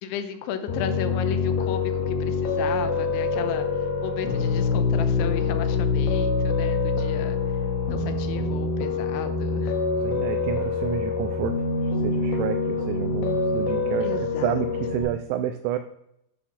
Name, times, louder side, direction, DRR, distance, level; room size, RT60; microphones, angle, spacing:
voice 1, 0.0-7.4 7.9-9.8 14.0-14.6, left 8 dB, 85° left, 9 dB, 3.0 m, -34 dB
Piano, 0.7-15.0, left 4 dB, 70° left, 2.4 m, -25 dB
voice 2, 10.0-14.1 14.4-15.8, right 11 dB, 85° right, 7 dB, 2.5 m, -29 dB
10.0 x 4.0 x 6.1 m, 0.79 s
omnidirectional pair, 5.4 m